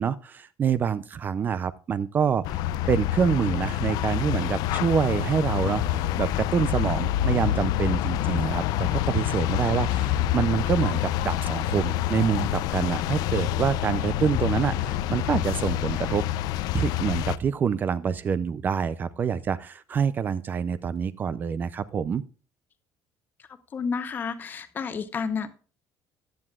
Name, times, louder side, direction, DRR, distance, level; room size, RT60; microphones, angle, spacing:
voice 1, 0.0-2.6 2.9-16.2 16.7-22.2, right 7 dB, 25° right, 16 dB, 0.4 m, -26 dB
sound 1, 2.4-17.4, left 12 dB, 75° left, 0.5 m, -27 dB
voice 2, 23.7-25.5, left 5 dB, 30° left, 11 dB, 0.9 m, -30 dB
15.0 x 9.8 x 2.3 m, 0.37 s
cardioid pair, 175°, 7 cm